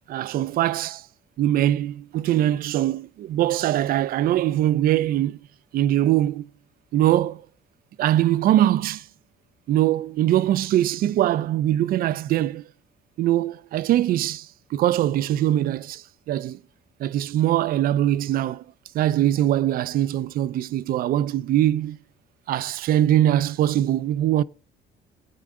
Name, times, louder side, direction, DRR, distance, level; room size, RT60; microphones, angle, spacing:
voice 1, 0.1-1.1 1.4-5.4 5.7-6.5 6.9-7.4 8.0-9.0 9.7-12.6 13.2-16.6 17.0-18.6 18.9-22.0 22.5-24.4, right 12 dB, 60° right, 0.4 m, -22 dB
16.0 x 8.6 x 3.6 m
cardioid pair, 110°, 17 cm